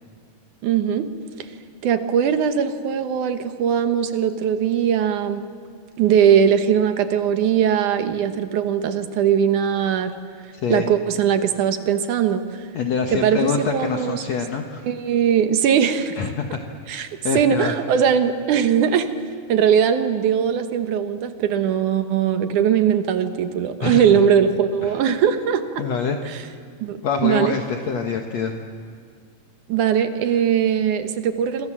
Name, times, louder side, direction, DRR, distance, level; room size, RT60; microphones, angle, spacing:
voice 1, 0.6-1.1 1.8-5.4 6.0-10.1 10.7-12.7 13.1-14.2 14.9-16.2 16.9-17.1 17.3-19.1 19.5-25.8 26.3-26.4 26.8-27.6 29.7-31.7, right 8 dB, 65° right, 9 dB, 2.5 m, -20 dB
voice 2, 10.5-10.9 12.7-14.8 16.2-16.6 16.9-17.8 23.8-24.1 24.8-25.0 25.8-26.2 27.0-28.6, left 5 dB, 60° left, 4 dB, 2.2 m, -25 dB
27.0 x 26.5 x 7.4 m, 2.1 s
omnidirectional pair, 4.0 m